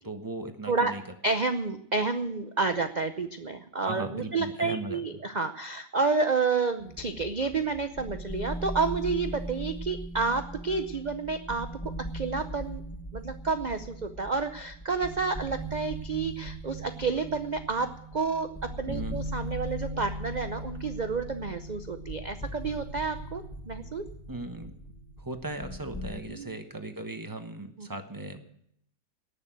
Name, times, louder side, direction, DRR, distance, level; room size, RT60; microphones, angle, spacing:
voice 1, 0.0-1.0 3.9-5.0 18.9-19.2 24.3-24.7 25.2-28.4, right 2 dB, 15° right, 7 dB, 1.0 m, -37 dB
voice 2, 1.2-11.7 12.1-12.8 13.1-24.1 26.3-26.5 27.8-27.9, right 4 dB, 55° right, 8 dB, 0.4 m, -30 dB
sound 1, 6.8-26.2, right 1 dB, 5° left, 1.4 m, -39 dB
18.5 x 6.8 x 9.1 m, 0.72 s
omnidirectional pair, 1.8 m